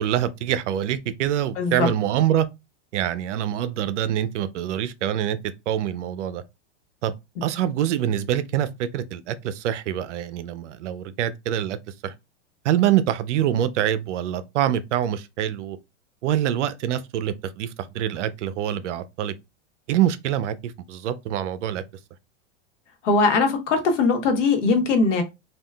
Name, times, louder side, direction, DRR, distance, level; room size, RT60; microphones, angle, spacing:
voice 1, 0.0-2.5 2.9-5.4 5.7-6.4 7.0-7.1 7.4-11.8 12.0-12.1 12.6-15.8 16.2-19.3 19.9-21.8, right 11 dB, 80° right, 0.6 m, -25 dB
voice 2, 1.6-1.9 23.0-25.2, left 4 dB, 85° left, 1.2 m, -20 dB
3.5 x 2.4 x 2.3 m
supercardioid pair, 135°, 35 cm